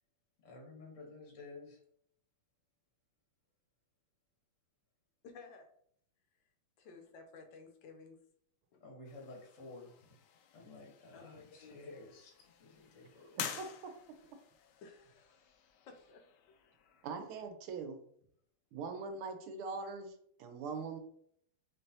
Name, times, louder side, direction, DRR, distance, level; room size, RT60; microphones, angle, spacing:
voice 1, 0.4-1.8 8.8-10.1 10.5-13.6 15.3-15.5, left 3 dB, 50° left, 0 dB, 1.0 m, -52 dB
voice 2, 5.2-5.7 6.3-6.4 6.8-8.2 8.7-8.8 10.7-10.8 11.1-11.8 14.8-15.3 15.9-16.6, left 4 dB, 75° left, 5 dB, 1.2 m, -55 dB
sound 1, 9.0-17.5, left 8 dB, 90° left, 0.9 m, -50 dB
voice 3, 13.6-14.2 17.0-18.0 18.7-21.0, right 4 dB, 80° right, 6 dB, 1.5 m, -42 dB
4.6 x 3.3 x 2.7 m, 0.66 s
omnidirectional pair, 2.4 m